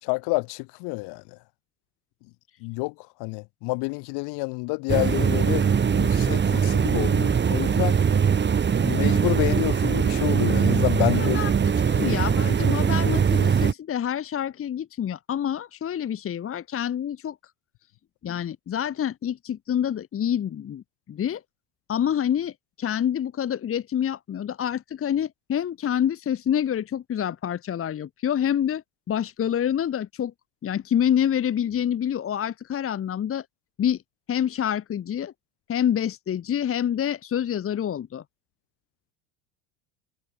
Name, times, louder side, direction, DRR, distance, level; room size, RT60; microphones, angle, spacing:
voice 1, 0.0-1.2 2.6-8.0 8.8-11.4 11.9-12.1, left 28 dB, 65° left, 5.7 m, -28 dB
sound 1, 4.9-13.7, right 7 dB, 25° right, 2.4 m, -21 dB
voice 2, 11.2-11.5 11.8-17.4 18.2-20.8 21.1-21.4 21.9-30.3 30.6-33.4 33.8-34.0 34.3-35.3 35.7-38.2, left 9 dB, 30° left, 1.6 m, -27 dB
supercardioid pair, 100°, 42 cm